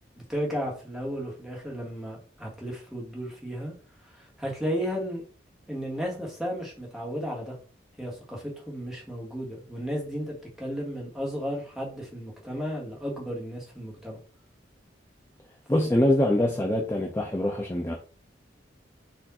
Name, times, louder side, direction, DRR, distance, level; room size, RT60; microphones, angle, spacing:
voice 1, 0.1-3.7 4.0-5.2 5.7-7.5 8.0-14.2, equal, ahead, 1.3 m, -34 dB
voice 2, 15.7-18.0, left 1 dB, 15° left, 0.5 m, -24 dB
4.4 x 2.6 x 4.1 m
head